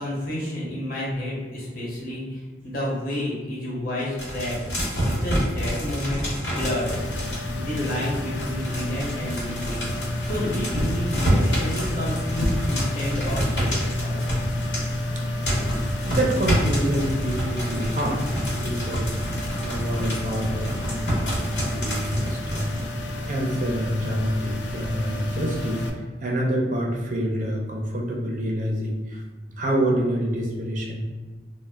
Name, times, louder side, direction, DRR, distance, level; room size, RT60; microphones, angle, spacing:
voice 1, 0.0-6.9 7.5-9.9 10.2-14.2, left 1 dB, 55° left, -5 dB, 0.8 m, -30 dB
sound 1, 4.2-15.2 15.4-22.9, equal, 90° left, 1.0 m, -28 dB
sound 2, 6.9-25.9, left 1 dB, 75° left, 0.3 m, -30 dB
voice 2, 16.0-18.2 18.5-19.1 19.6-22.9 23.3-29.2 29.6-31.0, right 1 dB, 45° right, -1 dB, 0.4 m, -27 dB
2.1 x 2.0 x 3.3 m, 1.3 s
head